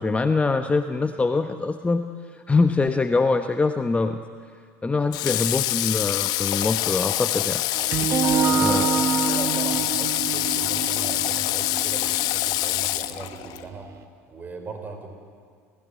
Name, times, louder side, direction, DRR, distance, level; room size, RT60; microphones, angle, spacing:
voice 1, 0.0-2.1 2.3-4.2 4.8-7.6 8.6-8.9, left 3 dB, 15° left, 8 dB, 1.0 m, -23 dB
Water / Water tap faucet, 5.1-13.6, left 16 dB, 55° left, 1.0 m, -25 dB
sound 1, 7.7-13.7, right 6 dB, 40° right, 1.6 m, -26 dB
voice 2, 8.1-13.9 14.3-15.1, right 4 dB, 20° right, 4 dB, 5.4 m, -38 dB
29.0 x 16.0 x 9.3 m, 2.1 s
hypercardioid pair, 75°, 8 cm